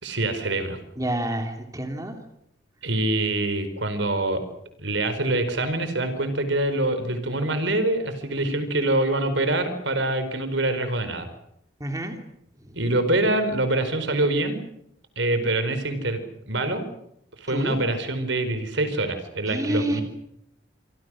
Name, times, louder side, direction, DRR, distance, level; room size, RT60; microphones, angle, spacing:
voice 1, 0.0-0.8 2.8-4.4 4.8-11.3 12.7-14.6 15.2-16.9 17.4-20.0, right 2 dB, 75° right, 10 dB, 4.6 m, -25 dB
voice 2, 1.0-2.1 11.8-12.1 17.5-17.8 19.5-20.0, right 1 dB, 20° right, 4 dB, 3.1 m, -28 dB
28.0 x 25.5 x 6.4 m, 0.77 s
head